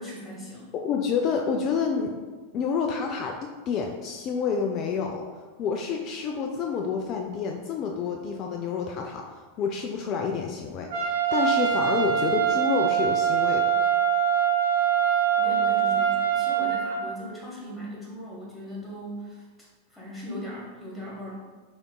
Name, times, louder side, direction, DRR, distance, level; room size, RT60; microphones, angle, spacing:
voice 1, 0.0-0.7 15.4-19.5 19.9-21.4, equal, 5° left, -7 dB, 1.4 m, -38 dB
voice 2, 0.8-2.1 2.5-3.4 3.7-5.3 5.6-13.7, left 6 dB, 40° left, 2 dB, 0.3 m, -28 dB
Trumpet, 10.9-17.0, right 9 dB, 60° right, 1.3 m, -23 dB
3.9 x 3.5 x 2.2 m, 1.4 s
figure-of-eight pair, 90°, 0 cm